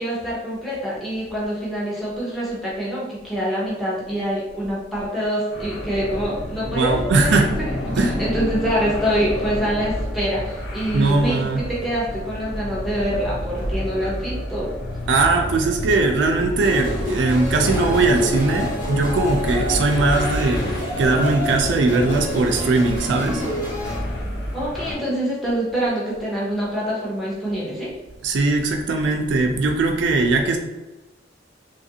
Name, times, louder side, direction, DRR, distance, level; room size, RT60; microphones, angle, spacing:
voice 1, 0.0-7.4 7.9-14.7 24.5-27.9, equal, ahead, -7 dB, 0.7 m, -25 dB
sound 1, 5.5-24.9, equal, 70° left, 0.9 m, -29 dB
voice 2, 6.7-7.5 8.0-8.2 10.9-11.6 15.1-23.4 28.2-30.6, right 3 dB, 85° right, 3 dB, 0.4 m, -20 dB
sound 2, 16.6-24.0, equal, 50° left, 1.1 m, -29 dB
2.9 x 2.4 x 2.7 m, 1.1 s
head